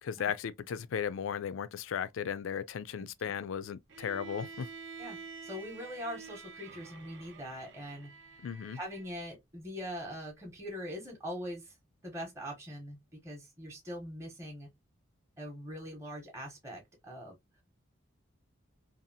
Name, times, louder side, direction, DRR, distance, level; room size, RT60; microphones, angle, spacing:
voice 1, 0.0-4.7 8.4-8.8, left 7 dB, 75° left, 0.3 m, -36 dB
Bowed string instrument, 3.9-9.1, right 5 dB, 70° right, 0.5 m, -48 dB
voice 2, 5.0-11.8 12.0-14.7 15.4-17.4, equal, 15° right, 0.7 m, -42 dB
2.7 x 2.4 x 2.6 m
head